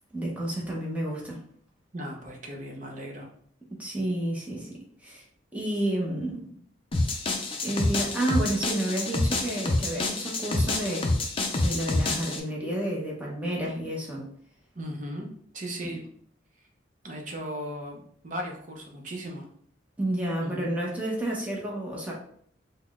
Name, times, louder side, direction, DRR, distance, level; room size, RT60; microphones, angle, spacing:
voice 1, 0.1-1.4 3.7-5.2 5.5-6.5 7.6-11.1 11.6-14.3 15.8-16.0 20.0-22.1, right 1 dB, 5° right, -3 dB, 0.8 m, -30 dB
voice 2, 1.9-3.3 14.7-16.0 17.0-19.5 20.4-20.7, equal, 40° right, 0 dB, 0.7 m, -37 dB
sound 1, 6.9-12.4, left 2 dB, 30° left, 0.4 m, -27 dB
4.0 x 2.1 x 3.5 m, 0.63 s
head